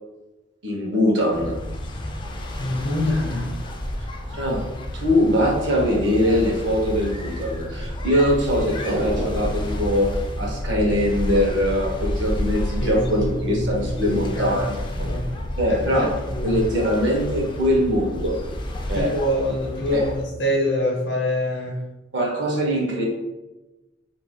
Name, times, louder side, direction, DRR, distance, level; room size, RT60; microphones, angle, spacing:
voice 1, 0.6-1.6 4.3-4.6 4.9-10.1 10.4-14.8 15.6-16.2 16.4-18.4 18.9-19.1 19.9-20.0 22.1-23.0, equal, 70° right, -1 dB, 0.7 m, -22 dB
sound 1, 1.3-20.3, left 1 dB, 25° left, 0.3 m, -30 dB
voice 2, 2.6-3.6 12.8-14.6 14.9-15.3 15.7-16.6 18.9-21.8, left 1 dB, 70° left, -3 dB, 0.7 m, -25 dB
sound 2, 8.8-11.3 11.6-11.7, right 1 dB, 35° right, 0.4 m, -32 dB
2.4 x 2.2 x 3.5 m, 1.1 s
head